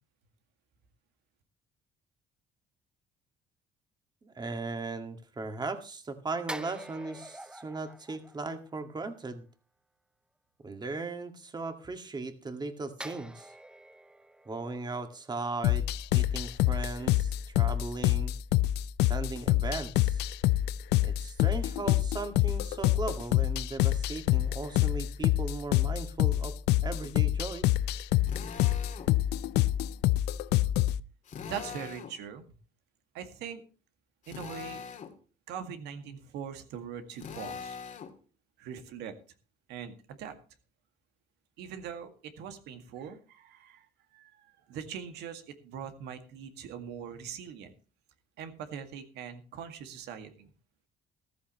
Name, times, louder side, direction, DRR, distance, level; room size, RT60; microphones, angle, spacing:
voice 1, 4.2-9.4 10.6-13.5 14.5-18.3 19.1-20.2 21.0-26.6 26.8-27.7, right 3 dB, 25° right, 7 dB, 2.0 m, -37 dB
sound 1, 6.5-9.2 13.0-16.2 16.5-16.7, right 1 dB, 5° right, 0.6 m, -47 dB
sound 2, 15.6-31.0, left 15 dB, 85° left, 0.5 m, -26 dB
Drill, 28.3-29.1 31.3-32.2 34.2-35.1 37.2-38.1, left 7 dB, 50° left, 2.1 m, -42 dB
voice 2, 31.4-32.4 33.1-33.6 34.3-34.9 35.5-37.8 38.6-39.1 39.7-40.4 41.6-43.9 44.1-47.7 48.4-50.5, right 8 dB, 85° right, 7 dB, 2.0 m, -42 dB
14.5 x 13.5 x 3.1 m, 0.36 s
cardioid pair, 110°, 17 cm